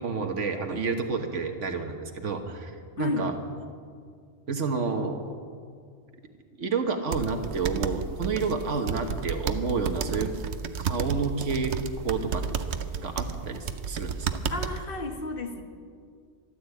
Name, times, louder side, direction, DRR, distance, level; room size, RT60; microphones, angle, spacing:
voice 1, 0.0-2.7 3.0-3.3 4.5-5.2 6.6-10.3 10.8-11.7 12.0-12.4 13.0-14.4, right 4 dB, 90° right, 5 dB, 1.6 m, -29 dB
voice 2, 3.0-3.3 14.5-15.6, left 2 dB, 50° left, 4 dB, 1.6 m, -32 dB
sound 1, 7.1-14.9, right 6 dB, 70° right, 1.0 m, -32 dB
13.5 x 12.5 x 8.2 m, 2.2 s
omnidirectional pair, 1.2 m